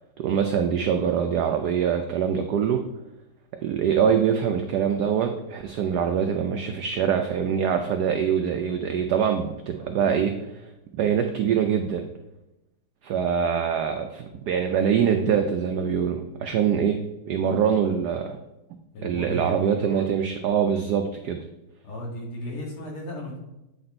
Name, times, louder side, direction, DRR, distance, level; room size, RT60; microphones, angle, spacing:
voice 1, 0.2-2.8 3.5-10.5 10.9-12.1 13.0-17.0 17.3-18.4 19.0-21.4, right 7 dB, 85° right, 5 dB, 0.9 m, -24 dB
voice 2, 9.8-10.3 18.9-20.1 21.8-23.4, equal, 80° left, -2 dB, 2.7 m, -35 dB
8.5 x 4.1 x 4.4 m, 0.94 s
omnidirectional pair, 2.3 m